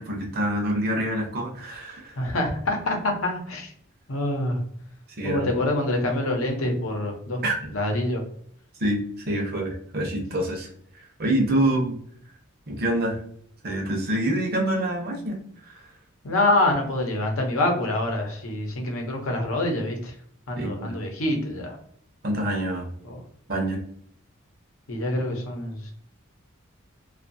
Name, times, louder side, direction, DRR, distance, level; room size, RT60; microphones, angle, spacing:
voice 1, 0.0-2.2 5.2-5.5 7.4-7.6 8.8-10.7 10.9-12.0 12.7-13.2 13.6-15.8 20.6-21.0 22.2-22.9 23.5-23.8, right 1 dB, 45° right, 1 dB, 0.7 m, -26 dB
voice 2, 2.2-3.7 4.1-4.6 5.2-7.4 7.7-8.2 16.2-20.1 20.5-21.8 23.0-23.2 24.9-25.9, left 1 dB, 75° left, 2 dB, 0.7 m, -26 dB
2.6 x 2.4 x 2.6 m, 0.62 s
head